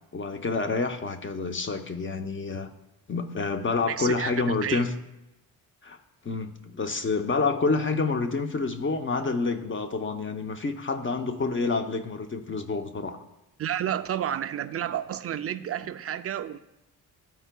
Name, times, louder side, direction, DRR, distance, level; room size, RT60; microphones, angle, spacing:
voice 1, 0.1-2.7 3.1-4.9 5.8-6.0 6.2-13.2, left 4 dB, 30° left, 7 dB, 0.7 m, -28 dB
voice 2, 3.8-4.8 13.6-16.6, right 10 dB, 35° right, 11 dB, 0.4 m, -31 dB
13.0 x 4.5 x 2.2 m, 0.90 s
cardioid pair, 85°, 42 cm